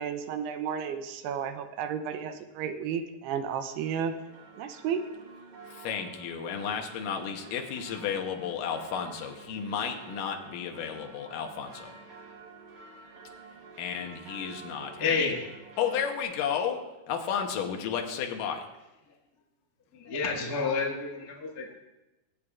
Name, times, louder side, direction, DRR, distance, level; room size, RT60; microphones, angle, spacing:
voice 1, 0.0-4.1 4.6-5.0, right 7 dB, 80° right, 8 dB, 2.6 m, -32 dB
sound 1, 3.7-16.2, right 4 dB, 65° right, 1.8 m, -49 dB
voice 2, 5.7-12.0 13.8-15.2 15.8-16.8 17.1-18.7, left 7 dB, 75° left, 3 dB, 2.1 m, -33 dB
voice 3, 15.0-15.5 19.9-21.8, left 4 dB, 50° left, -2 dB, 1.0 m, -30 dB
22.5 x 8.4 x 2.4 m, 1.0 s
omnidirectional pair, 5.0 m